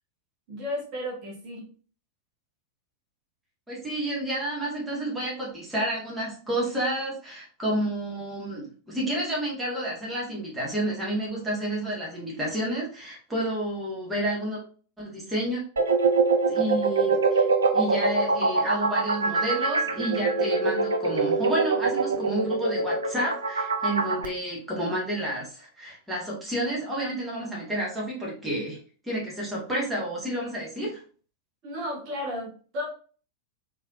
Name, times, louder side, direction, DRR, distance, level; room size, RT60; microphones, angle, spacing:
voice 1, 0.5-1.7 30.8-30.9 31.6-32.9, left 1 dB, 40° right, -3 dB, 1.4 m, -34 dB
voice 2, 3.7-14.6 15.0-15.6 16.5-17.4 17.7-28.8 29.0-31.0, right 1 dB, 5° right, -5 dB, 1.7 m, -30 dB
sound 1, 15.8-24.2, right 3 dB, 70° right, 0.5 m, -23 dB
3.9 x 3.3 x 2.5 m, 0.41 s
figure-of-eight pair, 90°, 0 cm